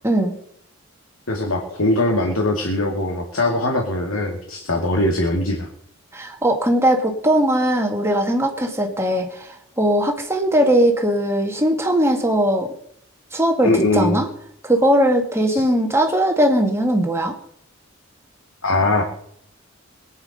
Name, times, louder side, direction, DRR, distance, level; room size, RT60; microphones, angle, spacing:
voice 1, 1.3-5.7 13.6-14.2 15.5-15.6 18.6-19.0, left 2 dB, 85° left, 2 dB, 2.2 m, -21 dB
voice 2, 6.1-12.7 13.3-14.3 14.6-17.3, right 1 dB, 15° right, 3 dB, 1.9 m, -19 dB
21.5 x 9.7 x 5.4 m, 0.72 s
head